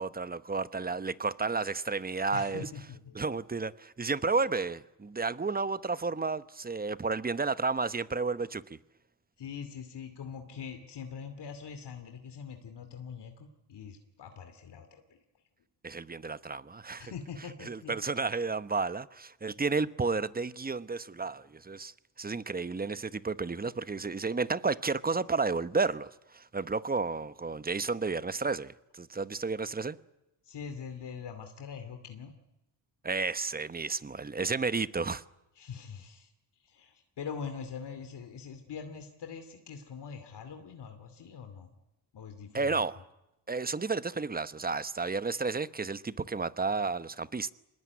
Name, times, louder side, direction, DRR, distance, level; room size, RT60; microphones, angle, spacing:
voice 1, 0.0-2.7 3.1-8.8 15.8-17.1 17.7-30.0 33.0-35.2 42.5-43.0 43.5-47.5, right 4 dB, 20° right, 0.9 m, -32 dB
voice 2, 2.3-3.2 9.4-15.2 17.0-17.9 30.4-32.3 35.6-41.7 42.1-42.9, left 6 dB, 65° left, 2.6 m, -43 dB
24.5 x 20.0 x 9.6 m
cardioid pair, 75°, 44 cm